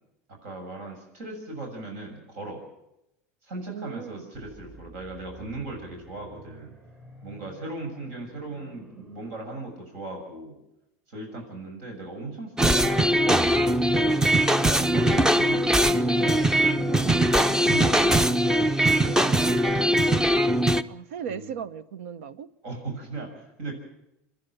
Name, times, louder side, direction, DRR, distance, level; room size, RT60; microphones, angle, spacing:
voice 1, 0.3-2.6 3.4-6.7 7.2-10.6 11.1-14.7 14.9-17.1 17.6-19.9 21.3-21.5 22.6-23.7, right 2 dB, 70° right, 6.7 m, -38 dB
voice 2, 3.7-4.3 20.9-22.5, right 7 dB, 90° right, 0.9 m, -37 dB
sound 1, 4.3-9.3, right 1 dB, 30° right, 5.5 m, -49 dB
sound 2, 12.6-20.8, right 1 dB, 10° right, 0.6 m, -21 dB
27.5 x 10.5 x 9.1 m
supercardioid pair, 105°, 7 cm